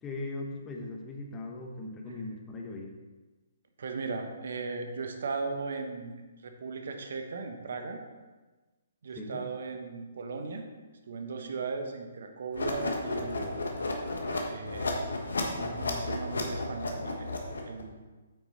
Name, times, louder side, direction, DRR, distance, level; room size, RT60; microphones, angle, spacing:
voice 1, 0.0-2.9 9.1-9.4, left 2 dB, 15° left, 1 dB, 1.2 m, -39 dB
voice 2, 3.8-6.1 6.4-8.0 9.0-10.7 11.1-13.6 14.5-17.4 17.7-18.0, right 4 dB, 65° right, 5 dB, 1.2 m, -37 dB
sound 1, 12.5-17.8, left 2 dB, 75° left, 1.4 m, -33 dB
8.6 x 6.0 x 4.2 m, 1.2 s
figure-of-eight pair, 135°, 0 cm